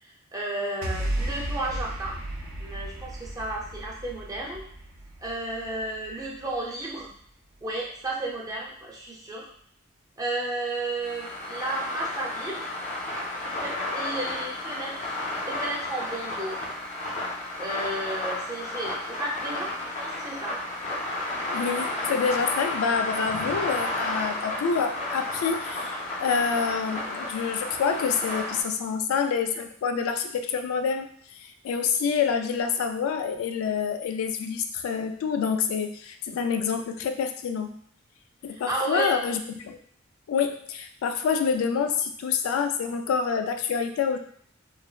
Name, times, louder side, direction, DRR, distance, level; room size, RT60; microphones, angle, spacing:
voice 1, 0.0-2.2 2.6-4.7 5.2-7.1 7.6-9.5 10.2-12.7 13.4-15.2 15.5-16.6 17.6-19.7 20.0-20.6 38.5-39.1, right 2 dB, 20° right, -3 dB, 0.6 m, -33 dB
sound 1, 0.8-7.3, right 1 dB, 75° right, 0.5 m, -35 dB
sound 2, 11.0-28.6, left 2 dB, 35° left, 0.6 m, -32 dB
voice 2, 21.5-31.1 31.4-37.7 38.4-39.8 40.3-44.2, left 6 dB, 90° left, 7 dB, 0.3 m, -27 dB
3.1 x 2.0 x 2.3 m, 0.63 s
head